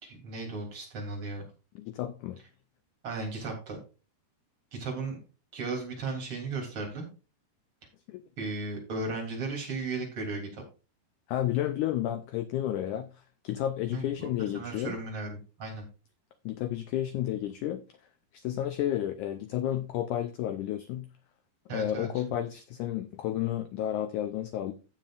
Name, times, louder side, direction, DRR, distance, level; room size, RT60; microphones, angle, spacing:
voice 1, 0.0-1.4 3.0-3.8 4.7-5.2 5.5-7.1 8.4-10.6 13.9-15.9 21.7-22.1, right 3 dB, 35° right, 3.7 m, -36 dB
voice 2, 1.7-2.4 8.1-8.2 11.3-15.0 16.4-17.8 18.3-21.1 21.7-24.7, left 12 dB, 85° left, 1.7 m, -31 dB
15.0 x 7.5 x 2.5 m
omnidirectional pair, 4.3 m